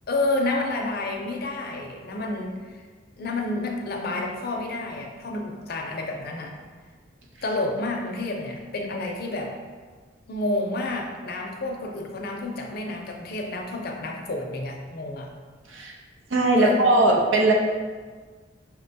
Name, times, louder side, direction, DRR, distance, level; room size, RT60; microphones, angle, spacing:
voice 1, 0.1-2.8 3.2-6.5 7.4-9.5 10.3-15.3 16.5-16.9, left 2 dB, 55° left, 1 dB, 0.5 m, -29 dB
voice 2, 16.3-17.5, right 2 dB, 90° right, 0 dB, 0.6 m, -19 dB
5.4 x 2.2 x 2.7 m, 1.5 s
head